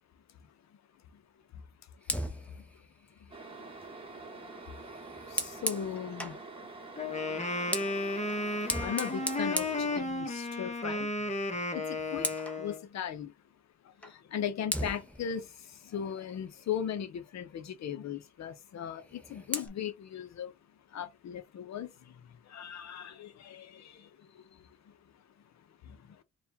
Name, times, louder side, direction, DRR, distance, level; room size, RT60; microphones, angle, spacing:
Fire, 2.0-6.5 7.3-10.6 11.0-11.2 11.6-12.6 14.0-14.2 14.7-17.0 18.9-19.7, equal, 5° left, 0.9 m, -39 dB
voice 1, 2.3-2.6 3.2-3.3 5.3-6.5 7.0-8.1 8.8-12.3 12.6-13.3 13.8-20.5 20.9-24.9 25.8-26.2, left 8 dB, 60° left, 0.9 m, -39 dB
sound 1, 3.3-10.0, right 3 dB, 20° right, 1.3 m, -46 dB
Wind instrument woodwind instrument, 7.0-12.8, left 2 dB, 20° left, 1.2 m, -33 dB
4.4 x 2.6 x 3.6 m
cardioid pair, 90°, 30 cm